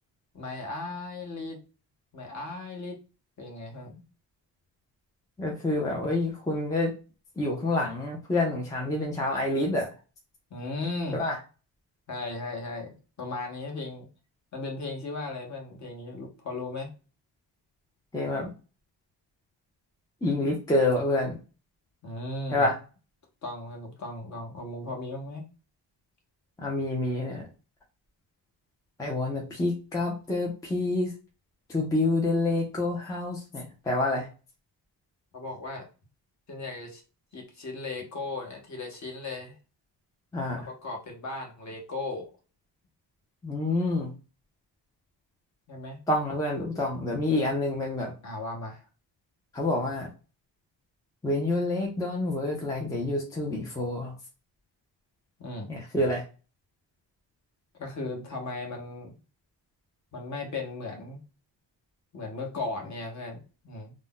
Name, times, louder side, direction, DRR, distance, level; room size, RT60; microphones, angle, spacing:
voice 1, 0.3-1.6 2.1-3.0 3.4-3.9 10.5-11.2 12.1-14.1 14.5-16.9 22.0-22.7 23.4-25.4 35.3-35.9 36.5-37.0 37.3-39.5 40.7-42.3 45.7-46.0 48.2-48.8 55.4-55.7 57.8-59.1 60.1-61.2 62.1-63.9, left 2 dB, 40° left, 1 dB, 0.9 m, -36 dB
voice 2, 5.4-6.9 7.4-9.9 11.1-11.4 18.1-18.5 20.2-21.4 22.5-22.8 26.6-27.5 29.0-31.1 31.7-34.3 40.3-40.7 43.4-44.1 46.1-48.1 49.5-50.1 51.2-54.1 55.7-56.2, left 2 dB, 10° left, -1 dB, 0.4 m, -27 dB
2.5 x 2.1 x 3.6 m, 0.34 s
wide cardioid pair, 170°, 44 cm